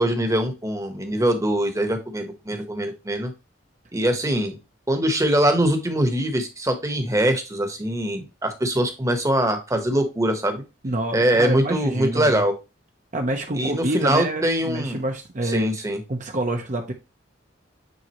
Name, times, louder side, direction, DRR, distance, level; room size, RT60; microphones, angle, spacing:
voice 1, 0.0-3.3 3.9-4.6 4.9-10.6 11.1-12.5 13.5-15.0 15.4-16.0, right 1 dB, 15° right, 1.1 m, -23 dB
voice 2, 10.8-12.4 13.1-15.7 16.1-16.9, right 1 dB, 40° right, 0.9 m, -27 dB
9.3 x 3.9 x 3.0 m
head